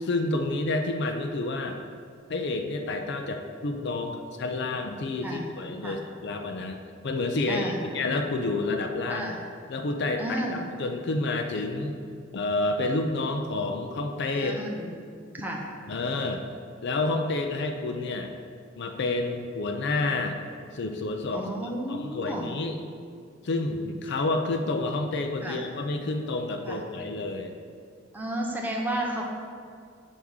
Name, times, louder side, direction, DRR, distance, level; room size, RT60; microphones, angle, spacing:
voice 1, 0.0-1.8 2.3-9.3 9.7-10.4 10.8-12.0 12.3-14.6 15.9-16.4 16.8-18.3 18.8-20.4 20.7-21.4 21.9-22.8 23.4-27.5, left 2 dB, 60° left, 5 dB, 0.5 m, -29 dB
voice 2, 7.5-7.8 9.1-9.4 10.2-10.6 14.3-14.9 15.3-15.7 21.3-22.5 25.4-25.6 26.6-26.8 28.1-29.2, right 1 dB, 10° right, -2 dB, 0.8 m, -32 dB
7.1 x 3.5 x 6.3 m, 2.2 s
head